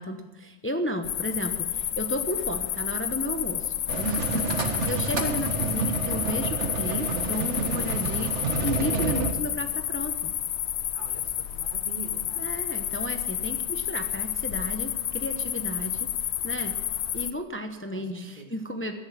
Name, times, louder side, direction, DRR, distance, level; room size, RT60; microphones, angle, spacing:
voice 1, 0.0-10.3 12.3-16.1 16.4-16.8 17.1-18.9, equal, 10° left, 6 dB, 0.9 m, -33 dB
sound 1, 1.0-17.3, left 11 dB, 70° left, 0.9 m, -30 dB
sound 2, 3.9-9.3, right 4 dB, 80° right, 1.7 m, -29 dB
voice 2, 4.5-4.8 10.9-12.5 17.9-18.0 18.4-18.5, right 4 dB, 45° right, 4 dB, 2.0 m, -43 dB
17.0 x 10.5 x 7.5 m, 1.3 s
omnidirectional pair, 1.2 m